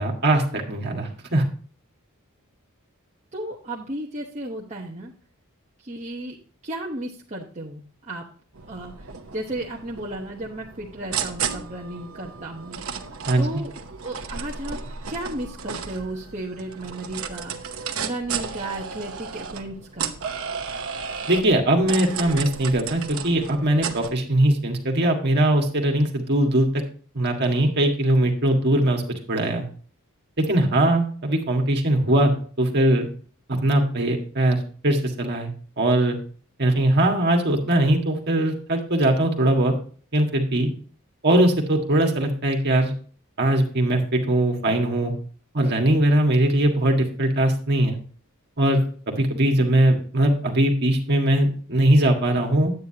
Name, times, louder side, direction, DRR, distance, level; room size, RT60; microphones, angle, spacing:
voice 1, 0.0-1.4 13.3-13.4 21.3-26.7 27.1-29.0 29.3-29.6 30.4-33.1 33.5-34.6 34.8-35.5 35.8-36.2 36.6-39.7 40.1-40.7 41.2-42.9 43.4-45.1 45.5-48.0 48.6-52.7, right 1 dB, 50° right, 2 dB, 1.7 m, -20 dB
voice 2, 3.3-5.1 5.8-6.4 6.6-8.2 8.7-12.8 13.4-13.7 14.0-14.8 15.1-20.2, right 1 dB, 30° right, -3 dB, 1.0 m, -34 dB
sound 1, 8.5-24.1, right 6 dB, 70° right, 0.9 m, -34 dB
9.4 x 9.0 x 2.8 m, 0.42 s
head